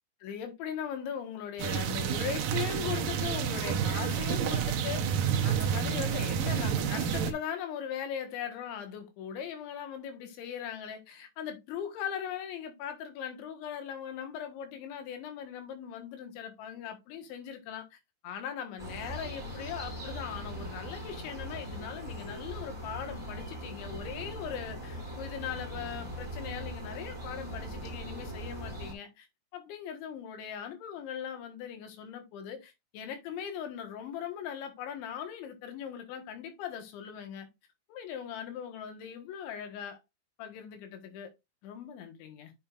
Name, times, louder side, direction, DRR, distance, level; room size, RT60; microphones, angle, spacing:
voice 1, 0.2-18.0 18.2-29.3 29.5-37.5 37.9-40.0 40.4-41.3 41.6-42.5, left 8 dB, 85° left, 3.9 m, -39 dB
sound 1, 1.6-7.3, right 8 dB, 75° right, 2.1 m, -29 dB
sound 2, 18.8-28.9, equal, 10° right, 3.6 m, -40 dB
8.8 x 6.7 x 2.5 m
omnidirectional pair, 5.2 m